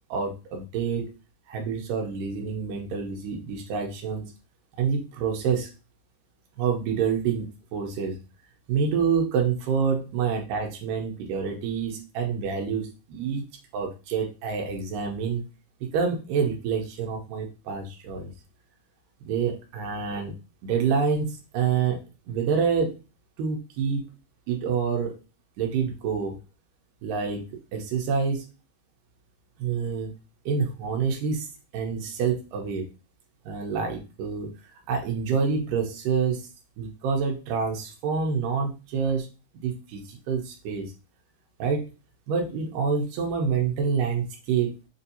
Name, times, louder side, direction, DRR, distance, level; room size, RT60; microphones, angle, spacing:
voice 1, 0.1-1.1 1.5-4.2 4.8-5.7 6.6-8.2 8.7-13.4 13.7-15.4 15.9-18.3 19.2-20.3 20.6-22.0 22.3-23.0 23.4-24.0 24.5-25.2 25.6-26.4 27.0-27.4 27.7-28.5 29.6-30.1 30.5-31.5 31.7-32.9 33.5-34.5 34.9-36.5 36.8-39.3 39.6-40.9 41.6-41.9 42.3-44.7, right 6 dB, 85° right, 1 dB, 2.4 m, -27 dB
7.0 x 2.6 x 2.7 m, 0.31 s
omnidirectional pair, 3.8 m